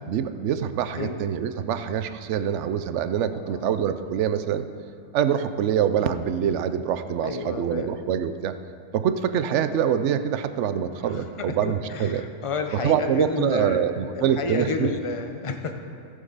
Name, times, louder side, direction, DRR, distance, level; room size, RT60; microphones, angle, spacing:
voice 1, 0.0-4.7 5.1-8.6 8.9-12.3 12.7-14.9, right 9 dB, 65° right, 10 dB, 0.8 m, -25 dB
voice 2, 3.3-3.7 7.2-7.9 11.0-13.9 14.1-15.8, left 4 dB, 35° left, 6 dB, 0.5 m, -31 dB
17.5 x 6.6 x 4.0 m, 2.3 s
omnidirectional pair, 1.5 m